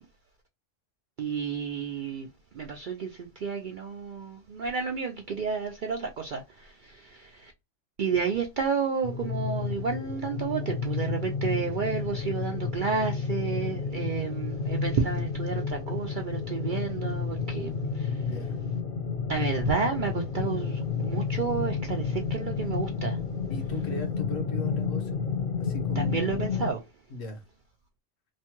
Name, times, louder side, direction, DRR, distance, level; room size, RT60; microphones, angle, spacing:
voice 1, 1.2-2.3 2.5-7.5 8.0-18.3 19.3-23.2 26.0-26.8, right 5 dB, 65° right, 0.5 m, -31 dB
sound 1, 9.0-26.7, left 5 dB, 50° left, 0.8 m, -31 dB
voice 2, 18.2-18.6 23.5-25.2 25.6-26.5 27.1-27.4, left 1 dB, 75° left, 1.3 m, -38 dB
3.1 x 2.2 x 2.9 m
omnidirectional pair, 1.3 m